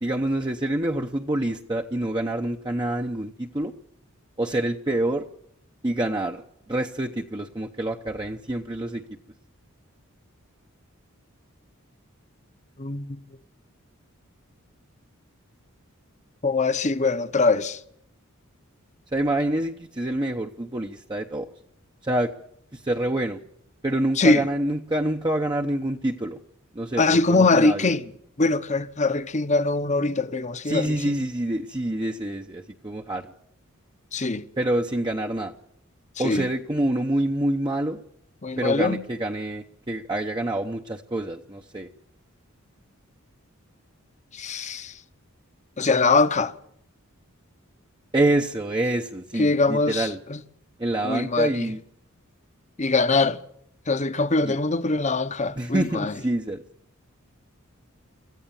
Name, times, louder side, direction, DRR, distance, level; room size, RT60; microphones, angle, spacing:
voice 1, 0.0-3.7 4.4-5.2 5.8-6.4 6.7-9.0 19.1-21.5 22.0-22.3 22.7-23.4 23.8-26.4 26.7-27.9 30.7-33.3 34.6-35.5 36.2-38.0 38.6-41.9 48.1-50.2 50.8-51.8 54.4-54.6 55.6-56.6, right 1 dB, 20° right, 0.9 m, -26 dB
voice 2, 12.8-13.2 16.4-17.8 24.2-24.5 27.0-28.0 28.4-31.0 34.1-34.4 36.2-36.5 38.4-39.0 44.3-44.9 45.8-46.5 49.4-50.4 51.0-51.7 52.8-53.4 53.9-56.1, left 3 dB, 35° left, 1.0 m, -22 dB
26.0 x 14.5 x 7.3 m
head